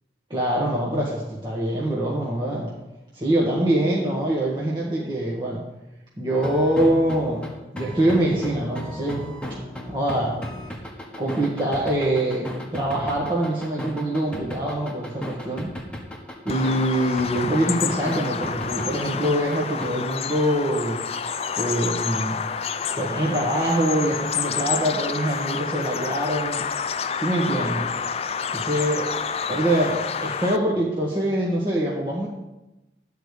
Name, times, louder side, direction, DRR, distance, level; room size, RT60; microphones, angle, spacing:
voice 1, 0.3-2.7 3.1-5.6 6.2-7.5 7.7-9.2 9.9-10.4 11.2-15.7 16.4-21.0 21.6-22.4 23.0-26.7 27.2-27.9 28.5-29.1 29.5-32.3, right 1 dB, 25° right, -5 dB, 1.5 m, -24 dB
sound 1, 6.3-19.9, equal, 5° left, 1.3 m, -35 dB
Bird vocalization bird call bird song, 16.5-30.6, left 6 dB, 35° left, 0.4 m, -29 dB
11.5 x 5.0 x 8.3 m, 1.0 s
head